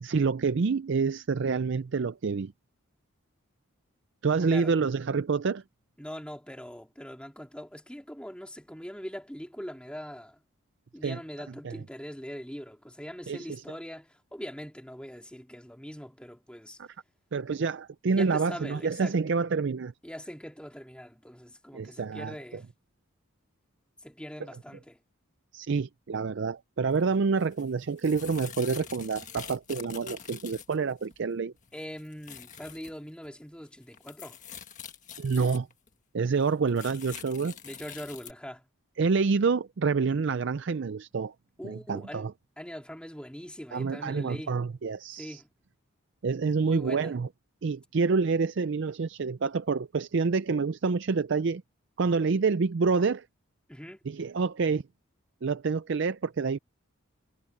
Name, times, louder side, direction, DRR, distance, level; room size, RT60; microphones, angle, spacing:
voice 1, 0.0-2.5 4.2-5.6 11.0-11.2 11.6-11.7 13.3-13.6 16.8-16.9 17.3-19.9 21.7-22.3 25.5-31.5 35.2-35.7 36.1-37.5 39.0-41.3 41.6-42.3 43.7-45.4 46.2-47.3 47.6-51.6 52.0-53.2 54.1-54.8 55.4-56.6, right 4 dB, 55° right, 0.4 m, -27 dB
voice 2, 6.0-10.4 10.9-16.8 18.1-19.2 20.0-22.7 24.0-25.0 31.7-34.4 37.6-38.6 41.6-42.3 42.6-44.6 45.1-45.5 46.6-47.1 53.7-54.0, equal, 5° left, 2.7 m, -42 dB
sound 1, 26.9-27.0 27.4-31.2 31.6-32.9 33.2-33.3 33.6-35.9 36.4-38.3, left 8 dB, 35° left, 1.7 m, -45 dB
head